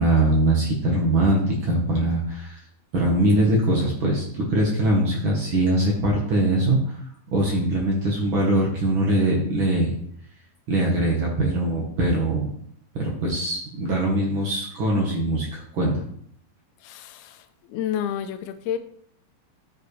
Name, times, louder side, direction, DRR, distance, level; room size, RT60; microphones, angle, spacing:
voice 1, 0.0-2.6 2.9-6.9 7.3-9.9 10.7-12.5 12.9-16.0, right 1 dB, 90° right, 1.1 m, -22 dB
voice 2, 16.8-18.8, left 9 dB, 80° left, 2.5 m, -30 dB
14.0 x 5.0 x 3.3 m
omnidirectional pair, 4.6 m